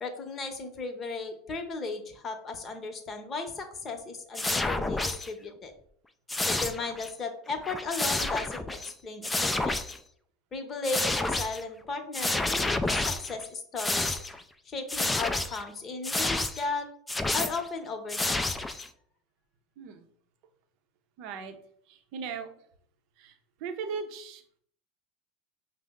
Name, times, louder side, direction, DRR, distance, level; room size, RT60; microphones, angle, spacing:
voice 1, 0.0-5.7 6.4-9.8 10.5-14.2 14.6-16.9 17.3-18.4, left 3 dB, 35° left, 6 dB, 0.8 m, -36 dB
sound 1, 4.3-5.3 6.3-7.1 7.5-8.9 9.2-10.0 10.8-11.6 12.1-13.4 13.8-14.4 14.9-15.7 16.0-16.7 17.1-17.7 18.1-18.9, left 2 dB, 10° left, 0.4 m, -29 dB
voice 2, 19.8-20.1 21.2-21.6 21.9-22.5 23.2-23.3 23.6-24.6, right 5 dB, 60° right, 6 dB, 0.6 m, -38 dB
5.2 x 2.0 x 3.5 m, 0.63 s
hypercardioid pair, 85°, 0 cm